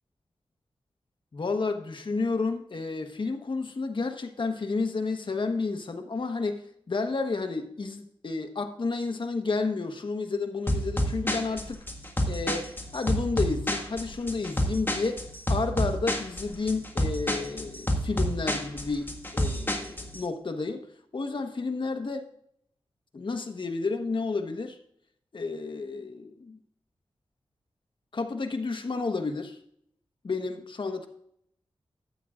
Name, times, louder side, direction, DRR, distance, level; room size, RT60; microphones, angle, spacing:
voice 1, 1.3-11.8 12.3-20.9 21.1-22.3 23.1-24.8 25.3-26.6 28.1-29.6 30.2-31.1, left 3 dB, 55° left, 5 dB, 1.2 m, -31 dB
sound 1, 10.7-20.2, equal, 20° left, 1.7 m, -29 dB
13.5 x 8.4 x 2.5 m, 0.71 s
cardioid pair, 55°, 10 cm